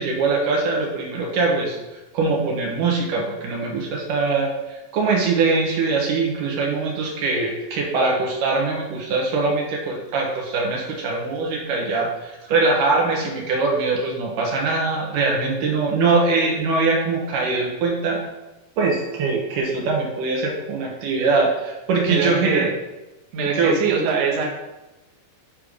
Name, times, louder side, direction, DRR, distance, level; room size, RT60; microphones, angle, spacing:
voice 1, 0.0-1.8 2.1-18.2 18.8-22.6 23.5-23.7, right 3 dB, 65° right, -1 dB, 2.3 m, -22 dB
voice 2, 22.1-22.7 23.3-24.5, right 5 dB, 85° right, -3 dB, 1.4 m, -22 dB
8.8 x 3.3 x 5.0 m, 1.0 s
omnidirectional pair, 5.0 m